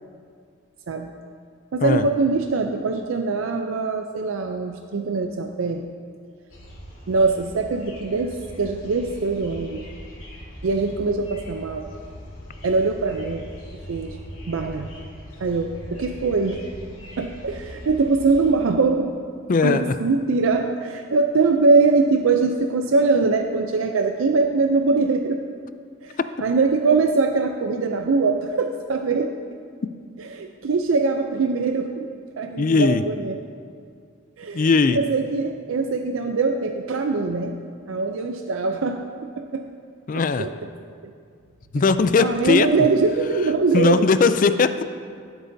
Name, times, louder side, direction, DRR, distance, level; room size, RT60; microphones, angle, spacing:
voice 1, 1.7-5.8 7.1-9.9 10.6-11.9 12.6-13.5 13.9-14.2 14.5-14.9 15.4-16.7 17.2-19.1 19.6-25.4 26.0-29.3 30.2-32.1 32.4-33.4 34.4-37.6 37.9-39.7 40.1-40.5 41.0-41.1 42.2-44.1, right 4 dB, 85° right, 5 dB, 0.5 m, -22 dB
sound 1, 6.5-18.5, equal, 85° left, 2.3 m, -40 dB
voice 2, 19.5-19.9 32.6-33.0 34.5-35.0 40.1-40.5 41.7-42.7 43.7-44.8, left 4 dB, 40° left, 11 dB, 0.3 m, -19 dB
15.0 x 8.0 x 2.7 m, 2.2 s
head